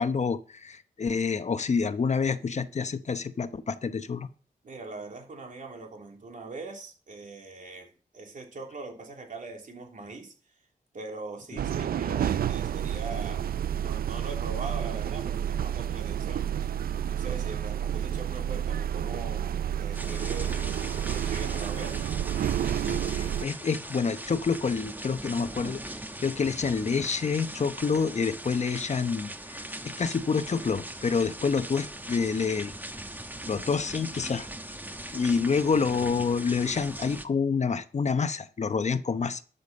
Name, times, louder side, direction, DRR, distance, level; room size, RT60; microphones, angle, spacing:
voice 1, 0.0-4.3 22.9-32.7 33.5-34.5 35.1-39.4, left 5 dB, 50° left, 11 dB, 0.9 m, -28 dB
voice 2, 4.6-10.3 10.9-13.5 13.8-16.7 17.1-20.7 21.1-22.0, right 3 dB, 60° right, 2 dB, 3.1 m, -41 dB
sound 1, 11.6-23.5, right 9 dB, 85° right, 0.4 m, -30 dB
sound 2, 19.9-37.2, right 1 dB, 10° right, 1.1 m, -40 dB
12.0 x 7.0 x 5.6 m, 0.39 s
cardioid pair, 80°, 15 cm